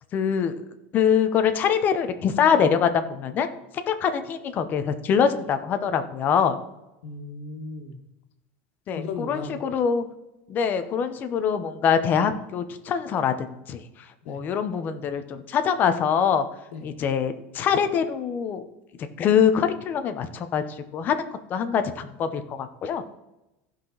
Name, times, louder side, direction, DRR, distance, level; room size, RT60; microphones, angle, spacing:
voice 1, 0.1-0.6 0.9-3.5 3.7-6.6 8.9-10.0 10.5-13.8 14.3-16.5 16.8-18.6 19.2-23.0, left 7 dB, 25° left, 9 dB, 0.7 m, -24 dB
voice 2, 7.0-8.0 8.9-9.5 14.2-14.4 16.7-16.9, left 4 dB, 85° left, 6 dB, 1.6 m, -35 dB
15.0 x 5.9 x 3.9 m, 0.95 s
supercardioid pair, 170°, 7 cm